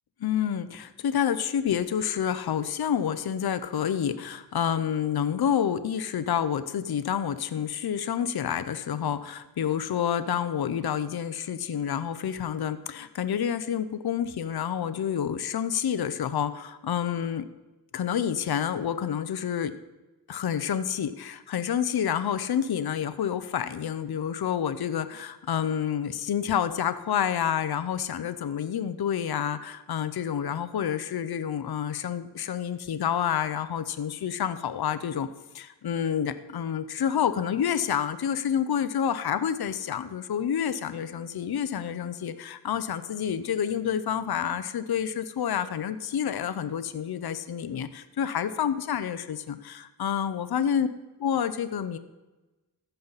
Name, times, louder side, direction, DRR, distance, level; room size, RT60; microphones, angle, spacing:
voice 1, 0.2-17.5 17.9-19.7 20.3-35.3 35.5-50.9 51.2-52.0, left 8 dB, 65° left, 12 dB, 0.6 m, -28 dB
15.0 x 5.7 x 4.0 m, 1.1 s
cardioid pair, 55°, 41 cm